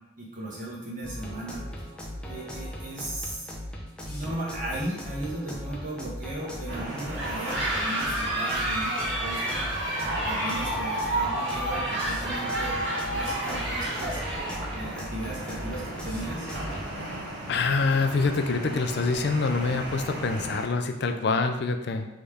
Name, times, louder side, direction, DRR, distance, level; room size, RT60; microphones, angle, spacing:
voice 1, 0.2-1.9 2.2-3.5 4.1-9.6 10.2-12.8 13.1-14.2 14.7-16.5, right 1 dB, 45° right, -5 dB, 1.3 m, -36 dB
sound 1, 1.0-16.9, equal, 5° left, 0.6 m, -38 dB
sound 2, 6.7-20.6, right 1 dB, 85° right, 1.2 m, -38 dB
sound 3, 7.1-15.0, right 1 dB, 65° right, 1.5 m, -30 dB
voice 2, 17.5-22.1, left 4 dB, 55° left, 6 dB, 0.4 m, -26 dB
4.0 x 3.6 x 3.4 m, 0.95 s
head